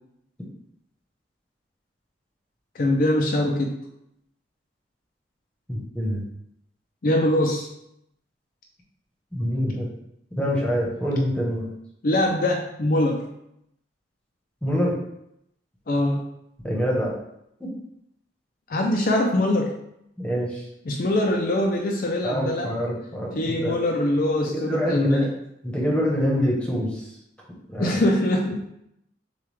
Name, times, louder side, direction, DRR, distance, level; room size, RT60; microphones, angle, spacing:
voice 1, 2.8-3.8 7.0-7.7 12.0-13.2 15.9-16.2 18.7-19.7 20.9-22.7 23.4-25.3 27.8-28.6, left 1 dB, 50° left, 1 dB, 0.5 m, -23 dB
voice 2, 5.7-6.2 9.3-9.9 10.4-11.7 14.6-15.0 16.6-17.1 17.6-17.7 20.2-20.6 22.2-23.8 24.4-25.3 25.6-27.0 27.7-28.0, equal, 5° left, -3 dB, 1.0 m, -25 dB
6.5 x 2.3 x 3.3 m, 0.79 s
head